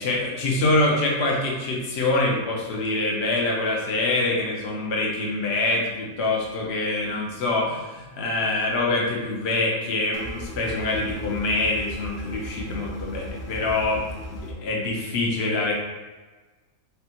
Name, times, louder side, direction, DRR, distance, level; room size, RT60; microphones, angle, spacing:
voice 1, 0.0-14.0 14.3-15.7, left 2 dB, 50° left, -2 dB, 1.0 m, -25 dB
sound 1, 10.1-14.5, equal, 90° left, 1.3 m, -36 dB
6.7 x 2.4 x 2.9 m, 1.2 s
omnidirectional pair, 1.5 m